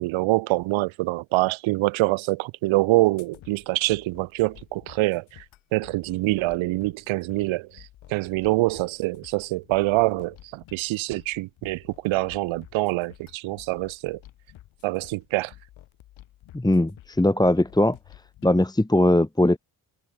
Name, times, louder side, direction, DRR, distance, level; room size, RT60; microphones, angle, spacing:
voice 1, 0.0-5.4 5.7-7.8 8.1-14.2 14.8-15.5, right 20 dB, 90° right, 0.8 m, -25 dB
sound 1, 3.2-18.6, left 14 dB, 85° left, 4.3 m, -51 dB
voice 2, 16.5-18.0 18.4-19.6, left 1 dB, 10° left, 1.2 m, -20 dB
supercardioid pair, 45°, 46 cm